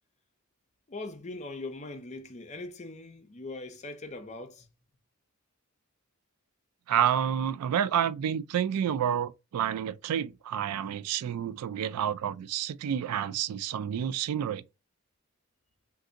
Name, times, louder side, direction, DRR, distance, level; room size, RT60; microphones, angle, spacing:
voice 1, 0.9-4.7, left 2 dB, 30° left, 0.5 m, -41 dB
voice 2, 6.9-14.6, right 9 dB, 90° right, 0.3 m, -29 dB
2.6 x 2.5 x 3.7 m
head